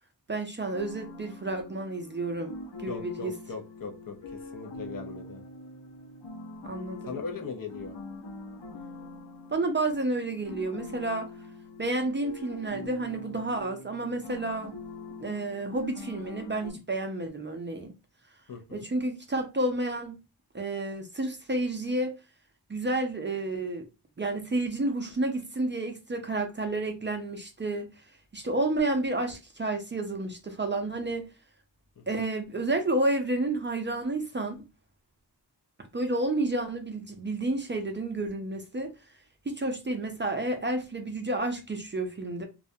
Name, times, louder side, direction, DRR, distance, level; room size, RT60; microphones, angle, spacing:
voice 1, 0.3-3.3 6.6-7.1 9.5-11.3 11.8-14.8 15.2-17.9 18.7-20.2 20.5-22.1 22.7-23.8 24.2-28.0 28.3-31.3 32.1-34.7 35.9-38.9 39.5-42.5, right 2 dB, 30° right, 0.4 m, -30 dB
sound 1, 0.7-16.7, left 2 dB, 85° left, 0.8 m, -43 dB
voice 2, 2.9-5.4 7.1-8.0 18.5-18.9 32.0-32.1, left 5 dB, 55° left, 0.6 m, -39 dB
2.3 x 2.1 x 2.6 m
wide cardioid pair, 90°, 41 cm